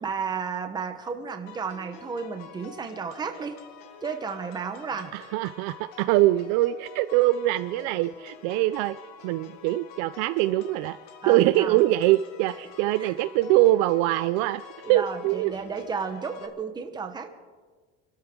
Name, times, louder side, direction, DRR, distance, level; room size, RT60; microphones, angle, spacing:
voice 1, 0.0-3.6 4.0-5.1 11.2-11.8 13.0-13.1 14.8-17.3, right 5 dB, 15° right, 6 dB, 0.9 m, -33 dB
sound 1, 1.5-16.5, left 8 dB, 70° left, 1.8 m, -48 dB
voice 2, 4.9-9.0 9.2-11.0 11.3-14.6 14.9-15.5, right 16 dB, 55° right, 13 dB, 0.4 m, -23 dB
28.0 x 13.0 x 3.7 m, 1.5 s
cardioid pair, 175°, 32 cm